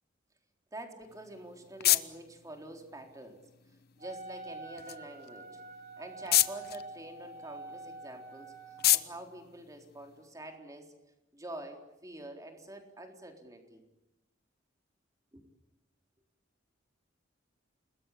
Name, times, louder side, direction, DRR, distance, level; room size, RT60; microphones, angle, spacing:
voice 1, 0.7-3.4 4.0-5.6 6.0-10.9 11.3-13.8 15.3-15.4, right 1 dB, 15° right, 3 dB, 3.8 m, -46 dB
sound 1, 1.0-10.5, left 14 dB, 55° left, 1.0 m, -34 dB
Wind instrument woodwind instrument, 4.0-9.0, right 3 dB, 45° right, 4.7 m, -47 dB
29.0 x 20.5 x 8.4 m, 0.93 s
head